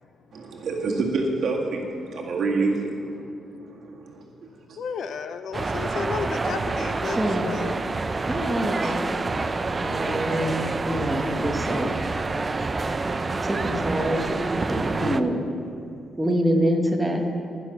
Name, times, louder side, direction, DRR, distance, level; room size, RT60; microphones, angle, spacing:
voice 1, 0.3-4.2 4.7-4.8, right 3 dB, 55° right, -1 dB, 1.9 m, -28 dB
voice 2, 4.8-7.8 8.8-8.9 10.6-10.7, left 6 dB, 60° left, 10 dB, 0.6 m, -33 dB
sound 1, 5.5-15.2, right 3 dB, 25° right, 0.4 m, -27 dB
voice 3, 7.2-7.5 8.3-9.1 9.8-11.9 13.4-14.4 14.7-15.5 16.2-17.2, equal, 5° right, 1 dB, 1.1 m, -25 dB
11.5 x 10.5 x 5.9 m, 2.6 s
cardioid pair, 145°, 0 cm